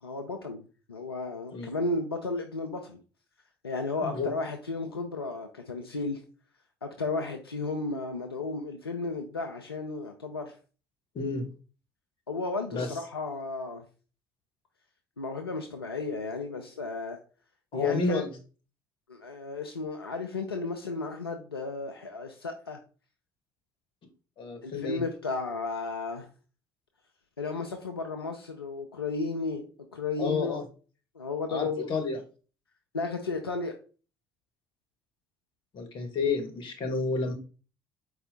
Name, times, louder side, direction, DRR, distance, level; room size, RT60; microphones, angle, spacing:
voice 1, 0.0-3.0 3.6-6.2 6.8-10.6 12.3-13.8 15.2-17.2 17.7-18.2 19.1-22.8 24.6-26.3 27.4-29.6 29.9-30.6 31.2-31.9 32.9-33.7, left 3 dB, 85° left, 0.4 m, -34 dB
voice 2, 17.7-18.3 24.4-25.0 30.2-30.6 31.5-32.2 35.7-37.3, left 4 dB, 45° left, 1.1 m, -30 dB
4.3 x 2.3 x 3.8 m
figure-of-eight pair, 55°, 12 cm